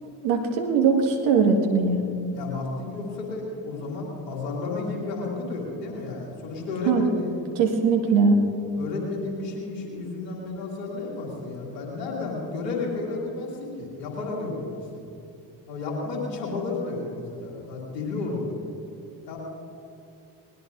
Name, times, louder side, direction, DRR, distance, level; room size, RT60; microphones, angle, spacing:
voice 1, 0.0-2.0 6.9-7.0 7.6-8.4, right 5 dB, 70° right, 2 dB, 1.9 m, -21 dB
voice 2, 2.3-7.4 8.8-15.0 15.7-18.6 19.3-19.4, left 3 dB, 85° left, -2 dB, 2.8 m, -32 dB
20.0 x 19.5 x 2.6 m, 2.6 s
hypercardioid pair, 40°, 49 cm